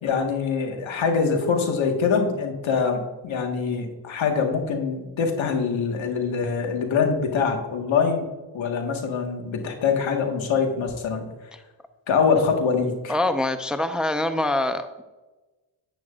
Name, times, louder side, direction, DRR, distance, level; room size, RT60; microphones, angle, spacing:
voice 1, 0.0-8.3 8.5-11.2 12.1-13.1, left 5 dB, 80° left, 3 dB, 1.7 m, -24 dB
voice 2, 13.1-15.0, left 1 dB, ahead, 8 dB, 0.6 m, -24 dB
10.5 x 9.0 x 2.5 m, 1.1 s
cardioid pair, 70°, 46 cm